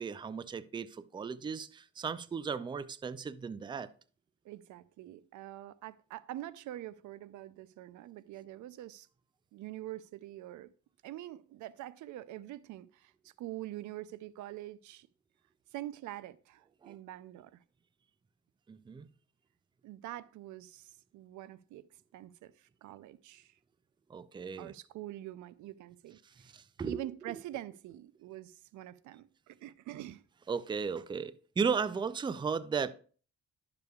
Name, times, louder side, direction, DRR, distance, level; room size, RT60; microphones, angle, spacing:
voice 1, 0.0-3.9 16.8-17.0 18.7-19.1 24.1-24.7 26.2-27.0 30.5-32.9, right 6 dB, 15° right, 0.4 m, -35 dB
voice 2, 4.4-9.1 9.5-10.7 11.0-15.1 15.7-17.6 19.8-21.8 22.1-23.6 24.6-26.5 26.8-30.2, right 14 dB, 75° right, 0.5 m, -45 dB
10.5 x 6.8 x 2.3 m
cardioid pair, 90°, 30 cm